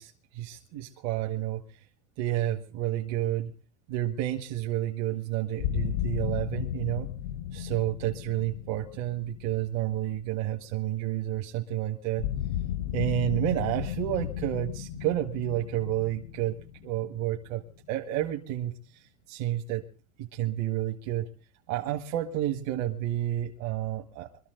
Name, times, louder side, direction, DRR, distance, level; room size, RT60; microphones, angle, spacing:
voice 1, 0.0-1.6 2.2-3.5 3.9-7.1 7.5-12.2 12.9-16.6 16.8-17.6 17.9-18.7 19.3-19.8 20.2-21.3 21.7-24.3, right 13 dB, 65° right, 3 dB, 1.9 m, -30 dB
sound 1, 5.6-10.5 12.2-17.8, left 11 dB, 90° left, 1.1 m, -34 dB
24.5 x 13.5 x 3.9 m, 0.36 s
supercardioid pair, 120°, 45 cm